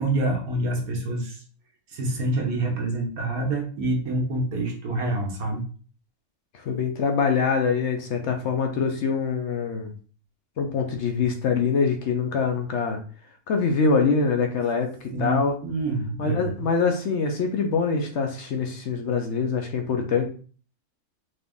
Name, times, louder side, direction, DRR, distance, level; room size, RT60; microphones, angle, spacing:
voice 1, 0.0-1.4 1.9-5.6 15.1-16.4, right 2 dB, 80° right, 2 dB, 1.5 m, -27 dB
voice 2, 6.5-9.9 10.6-13.0 13.5-15.5 16.2-20.3, left 5 dB, 60° left, 3 dB, 0.8 m, -24 dB
3.9 x 2.5 x 3.5 m, 0.41 s
omnidirectional pair, 1.5 m